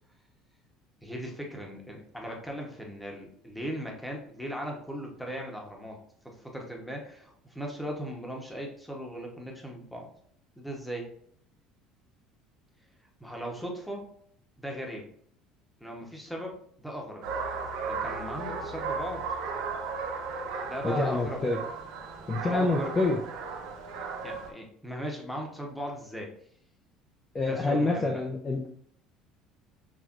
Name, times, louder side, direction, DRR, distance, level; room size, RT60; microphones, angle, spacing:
voice 1, 1.0-6.0 6.2-10.1 10.6-11.1 13.2-14.1 14.6-15.0 15.8-16.5 16.8-17.2 17.9-19.2 20.6-21.5 22.4-23.0 24.2-26.3 27.4-28.1, equal, ahead, 0 dB, 1.0 m, -38 dB
sound 1, 17.2-24.5, right 4 dB, 85° right, 1.1 m, -35 dB
voice 2, 20.8-21.6 22.3-23.2 27.3-28.7, left 2 dB, 20° left, 0 dB, 0.5 m, -27 dB
6.0 x 3.1 x 2.5 m, 0.64 s
cardioid pair, 145°, 0 cm